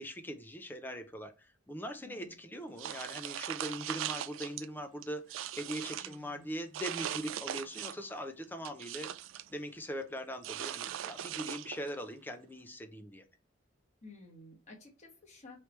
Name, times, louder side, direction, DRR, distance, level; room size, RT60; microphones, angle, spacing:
voice 1, 0.0-9.1 9.5-13.2, equal, 10° left, 0.5 m, -41 dB
voice 2, 2.0-2.4 5.9-6.5 14.0-15.6, left 2 dB, 35° left, 1.3 m, -54 dB
sound 1, 2.8-4.7 5.0-6.2 6.7-8.1 8.4-9.5 10.4-12.0, right 11 dB, 85° right, 0.3 m, -40 dB
4.6 x 3.3 x 3.1 m
head